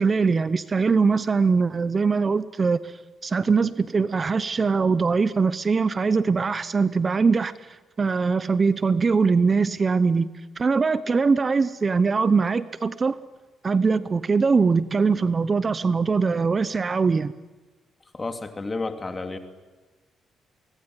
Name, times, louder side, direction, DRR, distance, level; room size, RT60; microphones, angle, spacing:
voice 1, 0.0-3.0 3.2-7.7 8.0-13.2 13.6-17.3, right 4 dB, 35° right, 15 dB, 0.9 m, -22 dB
voice 2, 18.1-19.4, left 3 dB, 25° left, 7 dB, 2.8 m, -31 dB
24.5 x 19.0 x 9.7 m, 1.2 s
cardioid pair, 90°, 0 cm